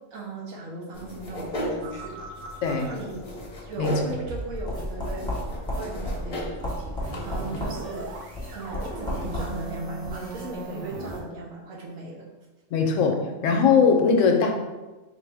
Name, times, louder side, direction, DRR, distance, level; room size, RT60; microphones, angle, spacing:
voice 1, 0.1-2.2 2.8-3.3 3.7-5.3 5.7-8.1 8.5-12.3, right 2 dB, 75° right, -2 dB, 1.1 m, -38 dB
sound 1, 0.9-9.3, left 1 dB, 35° left, 0.6 m, -37 dB
sound 2, 1.8-3.3 3.6-11.2, right 1 dB, 55° right, 0.6 m, -37 dB
sound 3, 4.7-10.5, left 1 dB, 5° left, 0.9 m, -34 dB
voice 2, 12.7-13.2 13.4-14.5, left 5 dB, 70° left, 3 dB, 0.9 m, -20 dB
4.2 x 2.6 x 3.3 m, 1.2 s
omnidirectional pair, 1.4 m